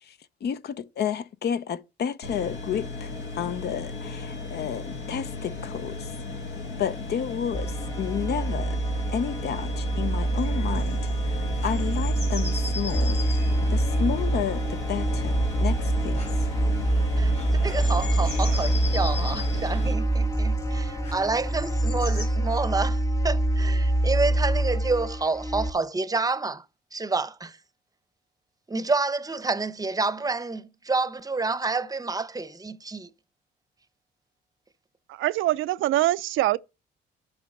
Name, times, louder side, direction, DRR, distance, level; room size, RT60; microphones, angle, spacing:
voice 1, 0.4-6.1 6.8-8.8 9.1-11.0 11.3-13.2 13.7-16.3, left 8 dB, 55° left, 0.6 m, -31 dB
sound 1, 2.2-19.9, left 3 dB, 75° left, 2.0 m, -36 dB
sound 2, 7.5-25.7, right 1 dB, 15° left, 0.8 m, -25 dB
sound 3, 10.3-22.3, left 3 dB, 35° left, 2.3 m, -38 dB
voice 2, 17.2-26.6 26.9-27.6 28.7-33.1, right 3 dB, 20° right, 0.8 m, -28 dB
voice 3, 35.1-36.6, right 15 dB, 85° right, 0.5 m, -24 dB
7.8 x 6.2 x 5.4 m
cardioid pair, 90°, 20 cm